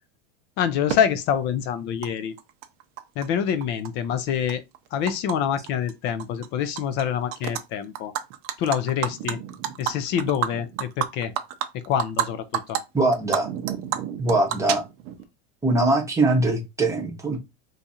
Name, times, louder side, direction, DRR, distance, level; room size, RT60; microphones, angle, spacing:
voice 1, 0.6-2.3 3.2-4.6 4.9-8.1 8.6-9.4 9.8-11.3 11.7-12.8, left 8 dB, 35° left, 0.4 m, -26 dB
Animal, 0.9-1.0 2.0-2.1 2.4-3.3 3.6-5.4 5.7-5.9 6.2-7.0 7.3-7.6 8.0-12.3 12.5-12.8 13.1-15.2, right 11 dB, 45° right, 0.5 m, -29 dB
voice 2, 12.9-13.5 14.2-14.8 15.6-17.4, right 2 dB, 10° right, 0.8 m, -22 dB
2.6 x 2.4 x 4.1 m
supercardioid pair, 145°, 31 cm